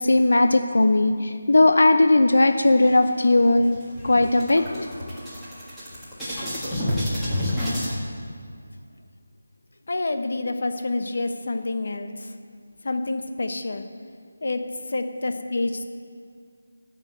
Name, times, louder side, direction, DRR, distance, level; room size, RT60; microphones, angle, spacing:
voice 1, 0.0-3.8 4.0-4.9, left 2 dB, 75° left, 8 dB, 0.7 m, -18 dB
sound 1, 2.6-3.3 3.7-3.8 4.1-7.9, left 1 dB, ahead, 1.7 m, -29 dB
voice 2, 9.9-12.3 12.8-13.9 14.4-15.8, left 2 dB, 50° left, 7 dB, 1.0 m, -28 dB
17.0 x 6.2 x 7.7 m, 2.2 s
figure-of-eight pair, 180°, 0 cm